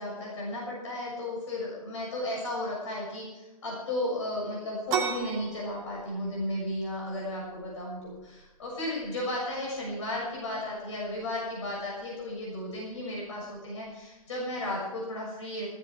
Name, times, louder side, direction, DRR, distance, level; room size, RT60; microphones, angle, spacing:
voice 1, 0.0-15.7, left 1 dB, 55° left, -4 dB, 6.8 m, -34 dB
sound 1, 4.9-14.3, right 7 dB, 20° right, 1.8 m, -40 dB
15.5 x 15.5 x 4.8 m, 1.0 s
hypercardioid pair, 160°, 18 cm